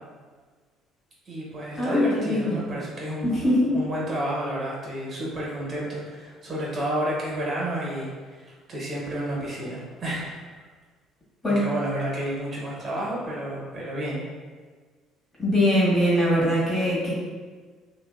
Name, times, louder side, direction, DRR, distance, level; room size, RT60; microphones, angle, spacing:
voice 1, 1.3-3.5 3.7-10.3 11.5-14.2, right 1 dB, 45° right, -4 dB, 0.8 m, -31 dB
voice 2, 1.8-2.6 3.2-3.7 11.4-11.6 15.4-17.1, equal, 30° left, -7 dB, 1.2 m, -22 dB
2.6 x 2.1 x 2.3 m, 1.5 s
supercardioid pair, 70°, 0 cm